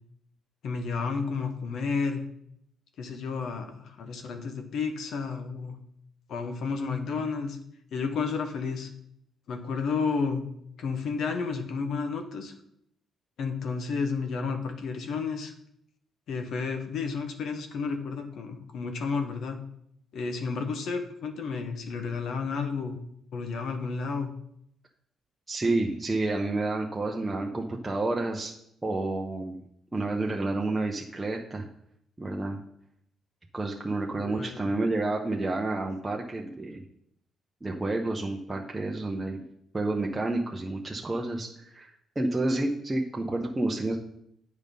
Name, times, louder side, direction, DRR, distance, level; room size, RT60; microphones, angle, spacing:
voice 1, 0.6-2.2 3.0-5.7 6.3-7.6 7.9-8.9 9.5-10.4 10.8-12.5 13.4-15.5 16.3-19.6 20.1-23.0 23.3-24.3 34.2-34.6, left 5 dB, 70° left, 6 dB, 1.2 m, -31 dB
voice 2, 25.5-28.5 28.8-29.6 29.9-31.7 32.2-32.6 33.5-36.8 37.6-39.4 39.7-44.0, right 2 dB, 20° right, 0 dB, 0.9 m, -30 dB
8.2 x 5.4 x 5.4 m, 0.73 s
cardioid pair, 90°, 0 cm